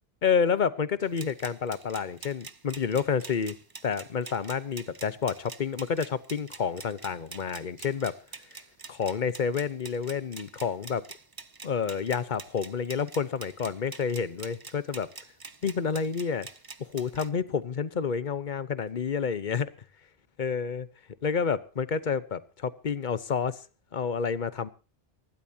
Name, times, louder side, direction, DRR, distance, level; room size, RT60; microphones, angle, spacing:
voice 1, 0.2-3.5 3.8-8.1 8.9-11.0 11.6-15.1 15.6-16.5 16.8-19.7 20.4-20.8 21.2-23.6 23.9-24.7, left 6 dB, 50° left, 1.0 m, -29 dB
sound 1, 1.0-17.3, right 4 dB, 25° right, 0.6 m, -46 dB
24.5 x 12.5 x 2.8 m
omnidirectional pair, 1.1 m